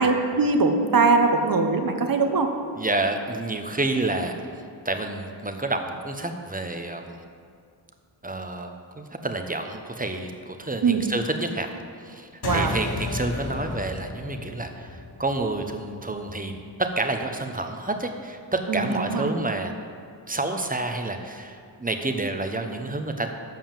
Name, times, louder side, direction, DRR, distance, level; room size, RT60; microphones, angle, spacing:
voice 1, 0.0-2.5 10.8-11.0 12.4-12.8 18.7-19.3, right 4 dB, 45° right, 5 dB, 1.1 m, -21 dB
voice 2, 2.8-4.3 4.8-7.1 8.2-11.8 12.1-14.9 15.2-16.6 17.0-19.7 20.3-23.3, right 2 dB, 15° right, 5 dB, 0.9 m, -29 dB
sound 1, 12.4-17.3, left 2 dB, 50° left, 1.3 m, -34 dB
7.5 x 5.6 x 7.2 m, 2.2 s
supercardioid pair, 45°, 49 cm